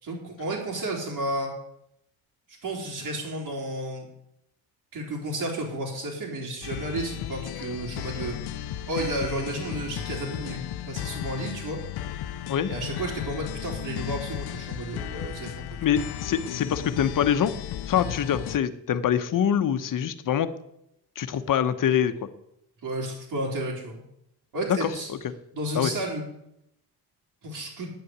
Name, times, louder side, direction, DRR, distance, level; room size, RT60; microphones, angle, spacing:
voice 1, 0.0-1.5 2.5-4.1 4.9-8.4 8.9-10.6 10.9-11.8 12.7-15.7 22.8-24.0 24.5-25.1 25.5-26.2 27.4-27.9, right 1 dB, 60° right, -5 dB, 3.7 m, -32 dB
sound 1, 6.6-18.6, left 11 dB, 70° left, 0.8 m, -35 dB
voice 2, 15.8-17.5 17.9-20.5 21.2-22.3 24.7-25.2 25.7-25.9, left 9 dB, 50° left, 12 dB, 1.1 m, -25 dB
9.8 x 9.3 x 9.3 m, 0.80 s
cardioid pair, 120°, 40 cm